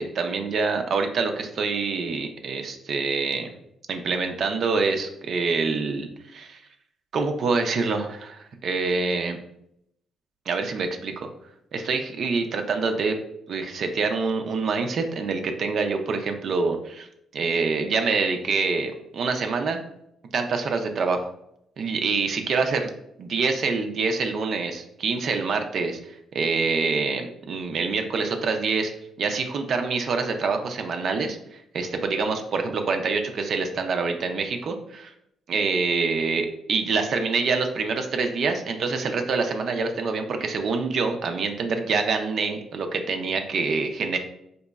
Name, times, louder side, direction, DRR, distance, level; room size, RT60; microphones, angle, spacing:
voice 1, 0.0-3.5 3.9-6.6 7.1-9.4 10.5-11.3 11.7-13.2 13.5-17.1 17.3-19.8 20.3-21.3 21.8-22.9 23.2-26.0 26.3-28.9 29.2-31.4 31.7-35.1 35.5-44.2, right 4 dB, 60° right, 5 dB, 0.4 m, -26 dB
4.0 x 2.9 x 2.3 m, 0.76 s
cardioid pair, 90°, 0 cm